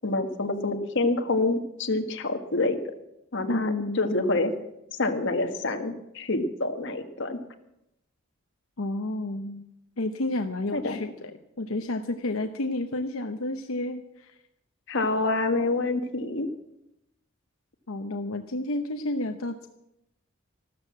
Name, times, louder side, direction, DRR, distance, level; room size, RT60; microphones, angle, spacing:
voice 1, 0.0-2.8 3.3-4.5 5.0-7.4 10.7-11.0 14.9-16.5, left 2 dB, 60° left, 6 dB, 1.6 m, -27 dB
voice 2, 3.5-4.1 8.8-9.6 10.0-11.3 11.6-14.4 17.9-19.7, left 2 dB, 85° left, 6 dB, 0.9 m, -30 dB
13.5 x 13.0 x 7.5 m, 0.85 s
head